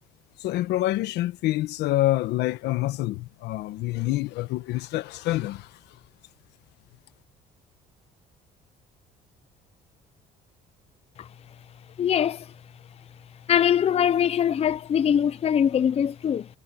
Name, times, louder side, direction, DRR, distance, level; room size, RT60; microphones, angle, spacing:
voice 1, 0.4-6.0, left 16 dB, 85° left, 1.2 m, -27 dB
voice 2, 12.0-12.5 13.5-16.5, left 9 dB, 35° left, 0.6 m, -22 dB
cardioid pair, 110°, 17 cm